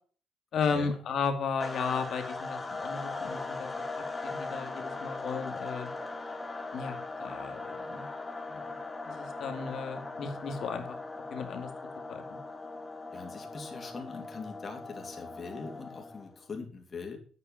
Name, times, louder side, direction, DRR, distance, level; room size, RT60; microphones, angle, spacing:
voice 1, 0.5-3.7 4.2-5.9 6.7-8.1 8.5-8.6 9.1-10.9 11.3-11.7 12.1-12.2, left 5 dB, 65° left, 7 dB, 2.2 m, -34 dB
sound 1, 1.6-16.3, left 3 dB, 20° left, 1.9 m, -39 dB
voice 2, 13.1-17.2, left 4 dB, 40° left, 3 dB, 3.0 m, -42 dB
8.9 x 8.3 x 5.8 m, 0.41 s
cardioid pair, 90°, 0 cm